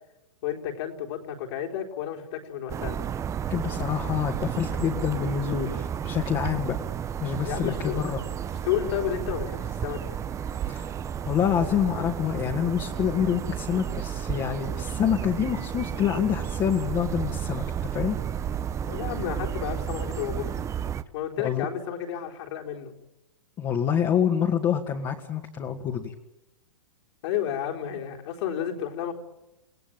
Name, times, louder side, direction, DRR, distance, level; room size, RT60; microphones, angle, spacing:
voice 1, 0.4-3.0 7.4-8.1 8.6-10.1 18.9-20.5 21.1-22.9 27.2-29.1, left 10 dB, 55° left, 2 dB, 4.1 m, -31 dB
sound 1, 2.7-21.0, right 9 dB, 20° right, 0.9 m, -32 dB
voice 2, 3.5-6.8 7.2-8.2 10.7-10.9 11.3-17.6 17.9-18.2 21.4-21.7 23.6-26.1, left 8 dB, 25° left, 1 dB, 2.1 m, -27 dB
29.5 x 17.5 x 9.0 m, 0.92 s
hypercardioid pair, 130°, 16 cm